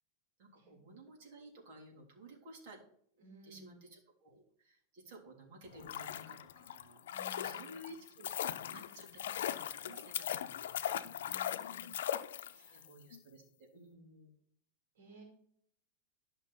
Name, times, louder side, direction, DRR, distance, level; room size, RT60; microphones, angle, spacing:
voice 1, 0.4-2.8 3.1-8.3 8.6-11.8 12.5-14.3, right 1 dB, 60° right, -1 dB, 3.7 m, -55 dB
voice 2, 3.2-3.8 7.1-7.7 11.2-12.0 12.3-12.8 15.0-15.3, equal, 85° right, 0 dB, 4.6 m, -57 dB
sound 1, 5.7-12.8 13.1-13.2, left 10 dB, 90° left, 0.6 m, -39 dB
12.0 x 6.1 x 4.2 m, 0.64 s
supercardioid pair, 150°, 0 cm